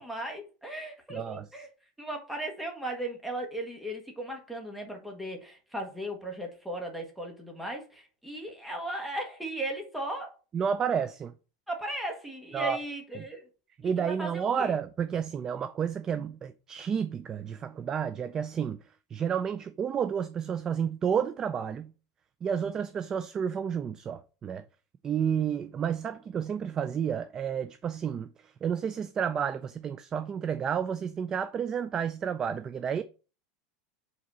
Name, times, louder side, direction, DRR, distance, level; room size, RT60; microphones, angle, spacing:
voice 1, 0.0-1.7 2.0-10.3 11.7-13.4 13.8-13.9 14.2-14.7, right 1 dB, 5° right, 1.4 m, -37 dB
voice 2, 1.1-1.5 10.5-11.3 12.5-12.8 13.2-13.3 13.8-18.8 19.1-21.9 22.4-24.7 25.0-33.0, right 7 dB, 20° right, 0.3 m, -31 dB
5.2 x 4.1 x 5.5 m
supercardioid pair, 165°, 3 cm